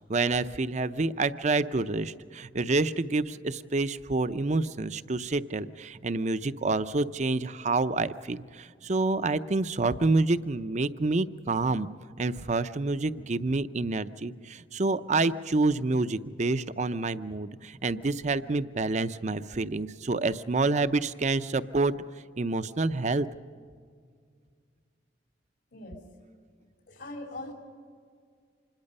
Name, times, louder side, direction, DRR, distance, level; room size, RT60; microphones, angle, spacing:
voice 1, 0.1-11.9 12.2-21.9 22.4-23.3, right 3 dB, 40° right, 13 dB, 0.6 m, -28 dB
voice 2, 25.7-26.0 26.9-27.5, left 2 dB, 75° left, 1 dB, 3.6 m, -40 dB
26.0 x 21.0 x 5.4 m, 2.1 s
head